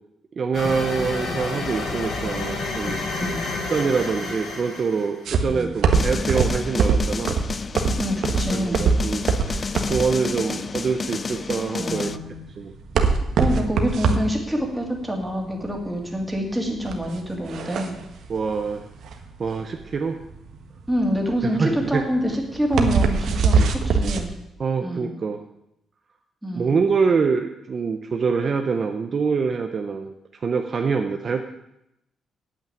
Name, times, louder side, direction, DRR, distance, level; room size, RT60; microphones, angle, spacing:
voice 1, 0.4-3.0 3.7-7.4 8.5-12.2 12.6-12.7 18.3-18.9 19.4-20.2 21.4-22.0 23.6-23.7 24.6-25.4 26.5-30.1 30.4-31.4, right 5 dB, 35° right, 5 dB, 0.8 m, -25 dB
sound 1, 0.5-5.3, left 3 dB, 55° left, 3.5 m, -29 dB
sound 2, 5.3-24.2, right 5 dB, 60° right, 1.4 m, -23 dB
voice 2, 5.5-6.2 8.0-8.9 11.8-12.4 13.4-17.9 20.9-24.3 24.8-25.1 26.4-26.8, equal, 5° right, 1 dB, 2.4 m, -26 dB
sound 3, 5.9-12.2, left 5 dB, 30° left, 0.4 m, -30 dB
8.9 x 8.6 x 9.2 m, 0.85 s
cardioid pair, 155°, 0 cm